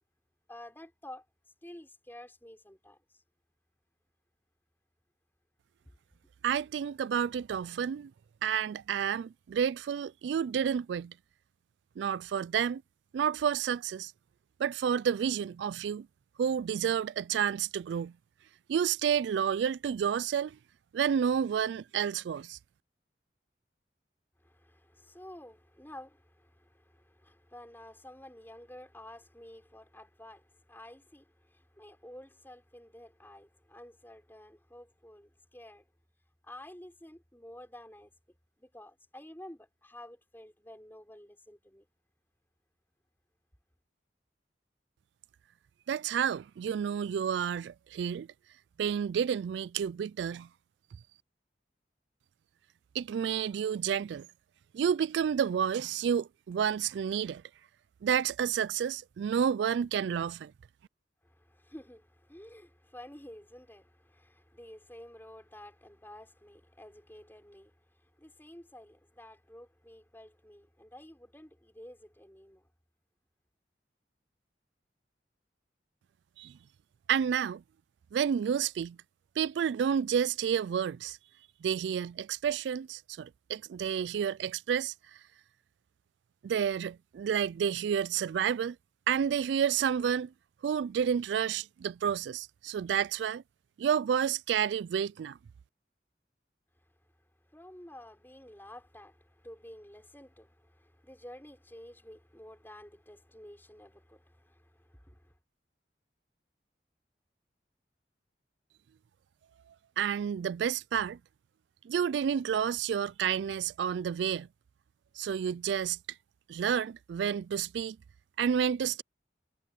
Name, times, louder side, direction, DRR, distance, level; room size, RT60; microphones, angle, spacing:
voice 1, 0.5-1.2 1.6-3.0 24.4-35.8 36.4-38.1 38.6-41.8 61.2-72.7 97.5-105.3, left 1 dB, 10° left, 5.7 m, -51 dB
voice 2, 6.4-8.1 8.4-11.1 12.0-12.8 13.1-14.1 14.6-16.1 16.4-18.1 18.7-20.6 20.9-22.6 45.9-48.3 48.8-50.5 52.9-54.3 54.7-57.4 58.0-60.5 76.4-76.6 77.1-77.6 78.1-79.0 79.4-81.2 81.6-85.2 86.4-88.8 89.1-90.3 90.6-93.4 93.8-95.4 110.0-111.2 111.8-114.5 115.2-116.0 116.5-118.0 118.4-119.0, right 8 dB, 80° right, 0.3 m, -30 dB
head